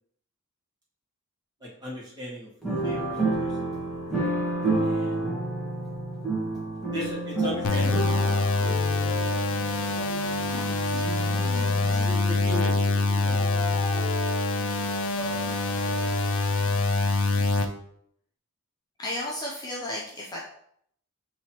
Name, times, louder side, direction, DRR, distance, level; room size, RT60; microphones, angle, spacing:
voice 1, 1.6-3.7 4.8-5.4 6.8-8.7 12.0-13.9, equal, 20° right, -5 dB, 1.5 m, -39 dB
sound 1, 2.6-16.3 16.6-16.7, right 2 dB, ahead, 1.3 m, -31 dB
sound 2, 7.6-17.6, left 3 dB, 70° left, 0.5 m, -25 dB
voice 2, 10.5-12.1 19.0-20.4, left 1 dB, 20° left, -3 dB, 0.6 m, -36 dB
5.9 x 3.0 x 2.9 m, 0.68 s
head